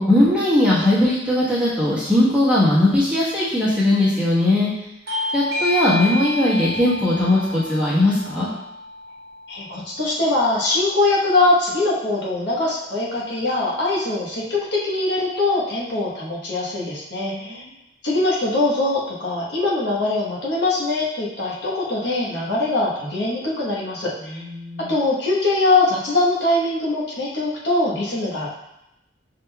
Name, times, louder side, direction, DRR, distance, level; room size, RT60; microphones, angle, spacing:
voice 1, 0.0-4.7 5.3-8.5 17.2-17.6 24.2-24.9, left 1 dB, 5° right, -9 dB, 1.1 m, -19 dB
Bell / Doorbell, 5.1-10.3, left 1 dB, 50° right, 1.0 m, -29 dB
voice 2, 9.5-17.6 18.0-24.4 24.8-28.5, left 2 dB, 60° left, -5 dB, 1.0 m, -22 dB
5.9 x 3.7 x 2.2 m, 0.87 s
head